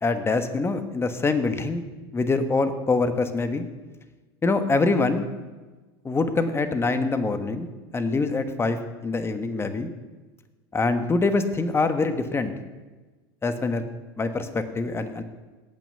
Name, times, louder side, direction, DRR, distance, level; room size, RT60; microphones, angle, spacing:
voice 1, 0.0-1.8 2.1-3.6 4.4-5.2 6.0-9.9 10.7-12.5 13.4-13.8 14.2-15.2, left 3 dB, 20° left, 9 dB, 1.3 m, -24 dB
17.5 x 6.2 x 6.8 m, 1.3 s
hypercardioid pair, 100°, 13 cm